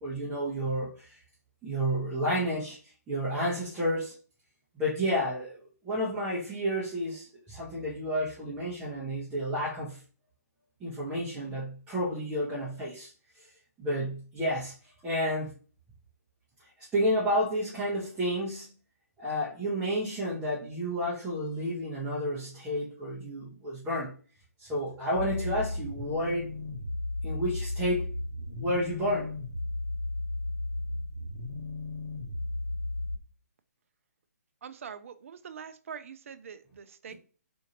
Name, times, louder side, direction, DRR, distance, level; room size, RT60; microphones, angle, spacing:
voice 1, 0.0-1.2 1.6-4.1 4.7-10.0 10.8-13.5 13.8-14.7 15.0-15.5 16.8-18.7 19.2-24.1 24.6-26.5 27.2-28.1 28.6-29.3, equal, 10° right, 0.7 m, -31 dB
sound 1, 25.1-33.1, left 2 dB, 55° left, 0.9 m, -34 dB
voice 2, 34.6-37.1, right 7 dB, 55° right, 0.4 m, -44 dB
2.6 x 2.4 x 2.8 m
figure-of-eight pair, 135°, 9 cm